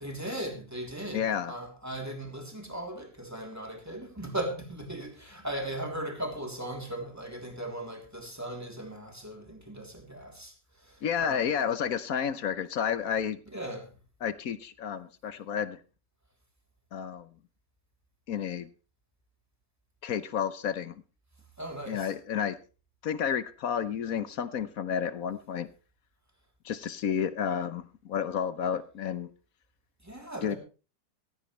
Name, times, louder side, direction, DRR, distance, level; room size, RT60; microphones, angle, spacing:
voice 1, 0.0-10.5 10.8-11.4 13.5-13.9 21.6-22.1 30.0-30.6, right 1 dB, 10° right, 3.1 m, -38 dB
voice 2, 1.1-1.5 11.0-13.4 14.2-15.8 16.9-17.3 18.3-18.7 20.0-21.0 21.9-22.6 23.0-25.7 26.6-29.3 30.4-30.6, left 8 dB, 60° left, 1.2 m, -31 dB
15.5 x 15.5 x 3.2 m
omnidirectional pair, 1.9 m